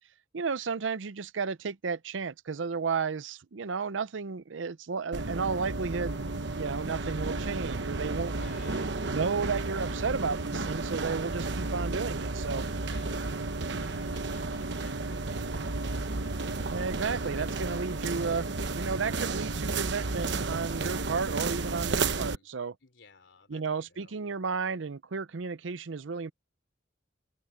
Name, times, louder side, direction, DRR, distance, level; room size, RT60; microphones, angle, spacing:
voice 1, 0.3-6.3 6.5-8.3 9.1-12.7 16.7-18.5 18.7-22.8 23.5-26.3, right 5 dB, 85° right, 0.6 m, -33 dB
sound 1, 5.1-22.4, right 3 dB, 65° right, 1.1 m, -32 dB
voice 2, 8.3-8.9 12.8-18.4 22.1-22.5 22.8-23.6 23.9-24.2, left 3 dB, 75° left, 3.5 m, -55 dB
open air
head